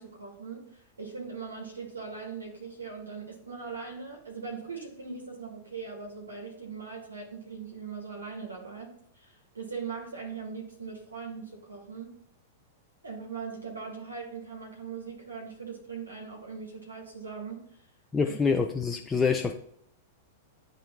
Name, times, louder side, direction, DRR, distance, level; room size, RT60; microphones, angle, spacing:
voice 1, 0.0-12.1 13.0-17.6 18.3-18.4, right 5 dB, 80° right, -1 dB, 1.5 m, -40 dB
voice 2, 18.1-19.5, left 5 dB, 10° left, 2 dB, 0.5 m, -26 dB
10.5 x 3.9 x 2.3 m, 0.68 s
figure-of-eight pair, 95°, 0 cm